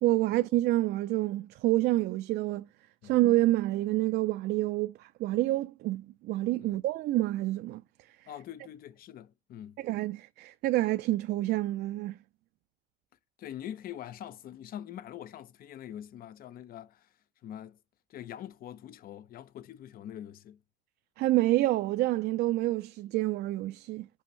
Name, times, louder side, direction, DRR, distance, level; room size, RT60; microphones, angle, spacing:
voice 1, 0.0-2.7 3.0-7.8 9.8-12.2 21.2-24.1, right 17 dB, 75° right, 0.4 m, -28 dB
voice 2, 8.3-9.8 13.4-17.1 17.4-17.8 18.1-20.6, left 11 dB, 60° left, 0.6 m, -44 dB
6.0 x 5.6 x 3.1 m
cardioid pair, 110°, 17 cm